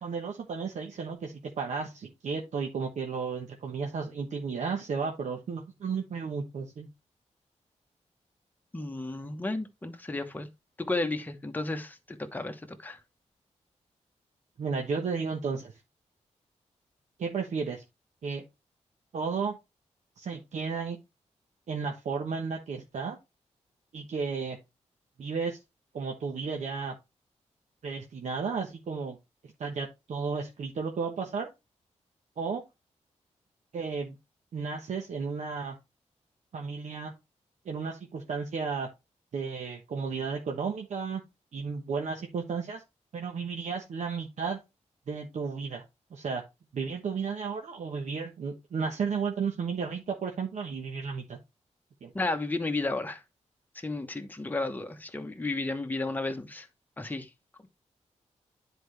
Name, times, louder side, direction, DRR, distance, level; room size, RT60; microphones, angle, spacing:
voice 1, 0.0-6.9 14.6-15.7 17.2-17.8 18.2-18.4 19.1-19.6 20.2-21.0 21.7-23.2 23.9-24.6 25.2-25.6 25.9-27.0 27.8-29.2 29.6-31.5 32.4-32.6 33.7-34.2 34.5-35.8 36.5-37.1 37.6-38.9 39.3-41.2 41.5-42.8 43.1-44.6 45.1-45.8 46.1-46.4 46.7-51.4 52.0-52.1, right 5 dB, 75° right, 1.2 m, -33 dB
voice 2, 8.7-10.5 10.8-13.0 52.1-53.2 53.7-56.7 57.0-57.3, left 2 dB, 15° left, 1.0 m, -33 dB
10.0 x 4.7 x 3.2 m
wide cardioid pair, 135°, 12 cm